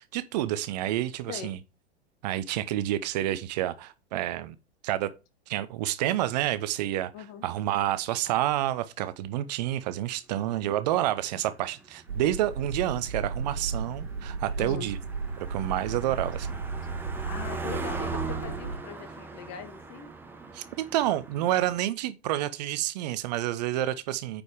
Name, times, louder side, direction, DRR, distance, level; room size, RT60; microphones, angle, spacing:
voice 1, 0.0-1.6 2.2-4.6 4.8-5.1 5.5-7.1 7.4-15.0 15.4-16.5 20.5-20.6 20.9-24.4, right 13 dB, 40° right, 0.7 m, -29 dB
voice 2, 7.1-7.4 14.6-14.9 17.2-20.1, left 8 dB, 40° left, 1.4 m, -41 dB
Car passing by, 10.7-21.8, right 3 dB, 5° right, 1.1 m, -40 dB
sound 1, 12.1-18.8, right 4 dB, 65° right, 1.3 m, -34 dB
9.3 x 5.2 x 3.5 m
figure-of-eight pair, 95°, 32 cm